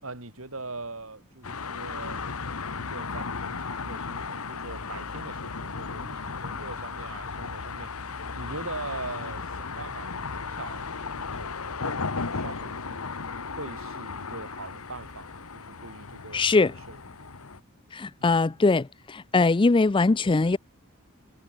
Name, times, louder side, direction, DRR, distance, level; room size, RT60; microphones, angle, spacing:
voice 1, 0.0-2.2 2.7-7.9 8.3-13.0 13.5-17.0, right 3 dB, 70° right, 5.4 m, -42 dB
sound 1, 1.4-17.6, left 4 dB, 90° left, 1.5 m, -35 dB
voice 2, 16.3-16.7 17.9-20.6, left 3 dB, 25° left, 0.4 m, -22 dB
head